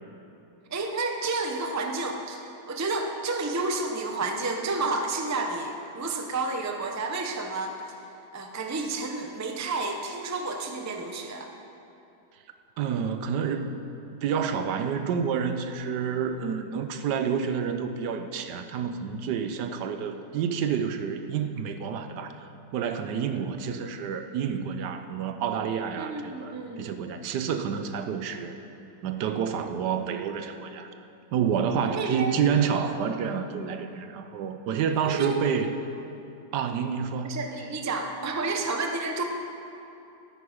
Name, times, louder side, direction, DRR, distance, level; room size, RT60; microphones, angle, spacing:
voice 1, 0.7-8.0 8.3-11.5 26.0-26.9 31.7-32.4 32.7-32.9 35.0-35.4 37.2-39.2, right 3 dB, 20° right, 3 dB, 0.4 m, -31 dB
voice 2, 12.8-13.7 14.2-28.5 29.0-30.9 31.3-35.7 36.5-37.4, right 7 dB, 85° right, 8 dB, 1.3 m, -29 dB
12.5 x 9.3 x 5.0 m, 2.8 s
omnidirectional pair, 1.8 m